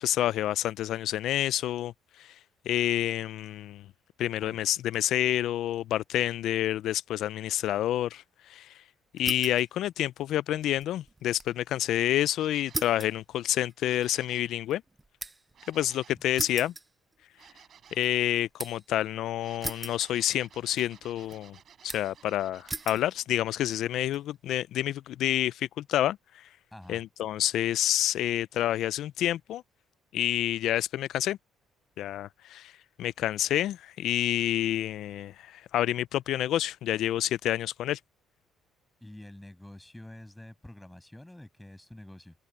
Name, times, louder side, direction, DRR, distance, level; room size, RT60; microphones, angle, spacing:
voice 1, 0.0-2.4 2.7-3.8 4.2-8.8 9.1-14.8 15.7-16.7 17.9-21.6 21.8-26.5 26.9-29.6 30.1-31.4 32.0-32.7 33.0-38.0, left 13 dB, 75° left, 0.3 m, -28 dB
sound 1, 9.2-9.7 10.0-11.6 11.9-12.0 12.7-15.6 16.4-17.5 17.9-18.9 19.6-20.5 20.8-21.4 21.9-22.2 22.7-23.1 23.7-24.2, right 3 dB, 20° right, 0.5 m, -39 dB
sound 2, 12.2-13.0 13.8-14.6 15.5-16.3 17.4-18.1 19.3-23.4 26.8-26.9, right 8 dB, 55° right, 7.9 m, -56 dB
voice 2, 26.7-27.0 39.0-42.3, left 1 dB, 5° left, 7.5 m, -47 dB
cardioid pair, 85°, 0 cm